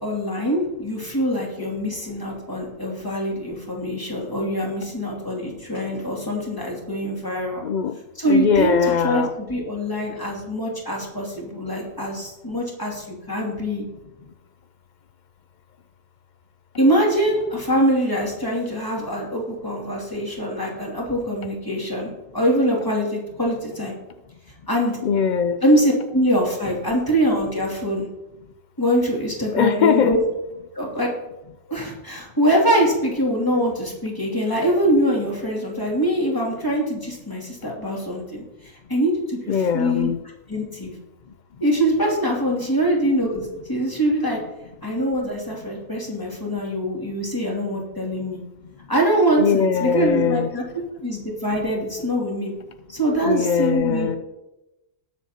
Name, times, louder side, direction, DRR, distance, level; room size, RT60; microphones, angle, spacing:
voice 1, 0.0-7.6 8.1-13.8 16.8-23.9 24.7-25.0 25.6-28.1 28.8-30.2 30.7-31.1 31.7-38.4 38.9-40.1 40.5-40.9 41.6-44.4 44.8-48.4 48.9-50.6 51.0-52.5 52.9-54.1, equal, 15° left, -3 dB, 2.6 m, -23 dB
voice 2, 7.6-7.9 8.3-9.3 25.0-25.6 29.5-30.1 39.5-40.2 49.4-50.5 53.2-54.2, left 7 dB, 60° left, 8 dB, 0.5 m, -20 dB
19.5 x 7.3 x 2.9 m, 0.97 s
omnidirectional pair, 1.4 m